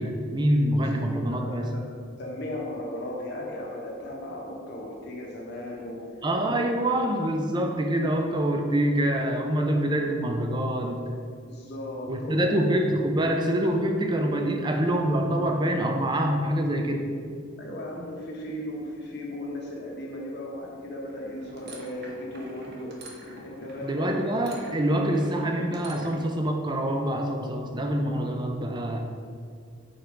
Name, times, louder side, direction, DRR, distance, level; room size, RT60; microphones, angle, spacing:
voice 1, 0.0-1.7 6.2-11.0 12.1-17.1 23.8-29.0, right 1 dB, 20° right, 3 dB, 0.5 m, -25 dB
voice 2, 1.3-1.8 2.2-6.1 11.4-12.7 17.6-23.0 23.4-24.2, left 1 dB, 50° left, -2 dB, 1.1 m, -36 dB
sound 1, 21.1-26.3, right 1 dB, 50° right, 1.0 m, -46 dB
5.4 x 4.5 x 5.0 m, 2.3 s
head